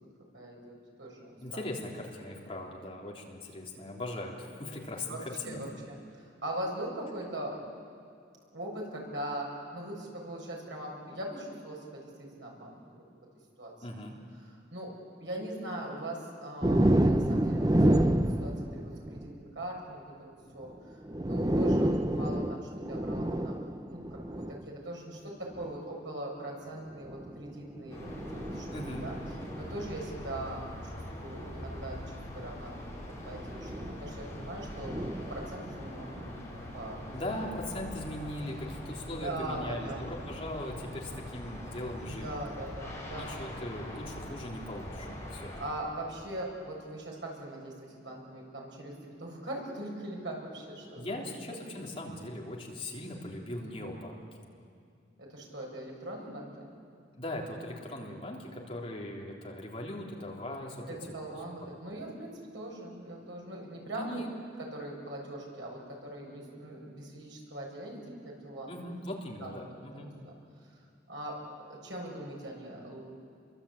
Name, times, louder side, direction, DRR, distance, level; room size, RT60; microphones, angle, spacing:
voice 1, 0.3-1.6 5.1-7.6 8.5-13.0 13.6-13.7 14.7-28.7 29.0-29.2 29.6-32.0 32.3-37.3 39.1-40.1 42.0-43.3 45.6-51.2 51.5-51.8 53.6-53.9 55.2-56.7 60.9-64.2 64.6-68.9 69.4-70.3 71.1-71.4 71.7-73.1, right 1 dB, 85° right, -1 dB, 7.1 m, -41 dB
voice 2, 1.4-5.6 13.8-14.1 28.7-29.1 37.1-42.4 43.2-45.5 51.0-54.2 57.2-61.3 63.8-64.3 68.7-70.1, left 1 dB, 30° left, -2 dB, 3.5 m, -39 dB
sound 1, 16.6-19.3 20.6-20.7 21.0-24.6 25.5-25.8 26.9-29.9 31.4-31.5 33.2-34.0 34.8-36.2, right 1 dB, 20° right, 0.8 m, -29 dB
sound 2, 27.9-45.7, left 1 dB, 15° left, 5.8 m, -43 dB
29.5 x 23.0 x 8.7 m, 2.3 s
head